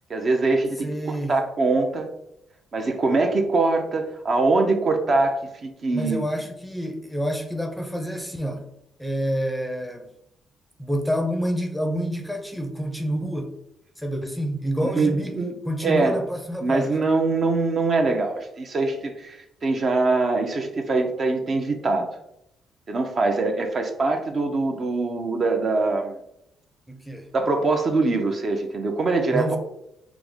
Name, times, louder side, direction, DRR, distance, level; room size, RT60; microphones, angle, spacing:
voice 1, 0.1-0.9 1.3-2.1 2.7-6.2 14.8-15.6 15.8-16.2 16.6-22.1 22.9-26.2 27.3-29.6, right 3 dB, 45° right, 4 dB, 0.5 m, -23 dB
voice 2, 0.8-1.4 5.9-8.7 9.0-10.1 10.8-13.5 14.0-15.4 15.7-17.0 26.9-27.3 29.3-29.6, equal, ahead, 4 dB, 0.6 m, -28 dB
4.7 x 2.1 x 3.5 m, 0.81 s
cardioid pair, 90°, 0 cm